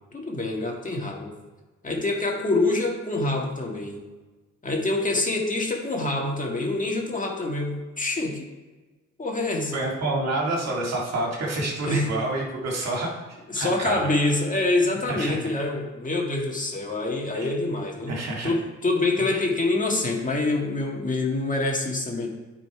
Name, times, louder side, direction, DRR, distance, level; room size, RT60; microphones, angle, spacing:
voice 1, 0.1-1.3 1.8-4.0 4.6-8.5 9.2-9.8 11.8-12.1 13.5-18.2 18.4-22.3, left 2 dB, 25° left, 0 dB, 1.6 m, -26 dB
voice 2, 9.7-14.1 15.1-15.5 17.3-17.5 18.1-18.5 19.3-19.4, right 2 dB, 60° right, -1 dB, 2.2 m, -28 dB
9.4 x 4.1 x 4.6 m, 1.2 s
cardioid pair, 90°, 30 cm